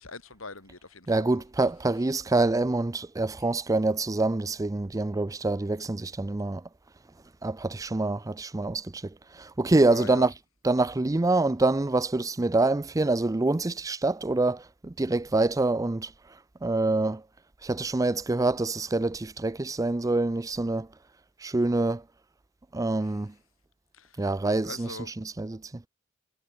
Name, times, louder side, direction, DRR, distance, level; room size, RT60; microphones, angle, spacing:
voice 1, 0.0-1.4 9.9-10.3 23.0-23.2 23.9-24.3 24.6-25.1, left 3 dB, 90° left, 6.0 m, -42 dB
voice 2, 1.1-6.6 7.4-10.3 10.6-16.1 16.6-17.2 17.6-20.9 21.4-22.0 22.7-23.3 24.2-24.9 25.2-25.8, right 2 dB, 15° right, 0.5 m, -26 dB
head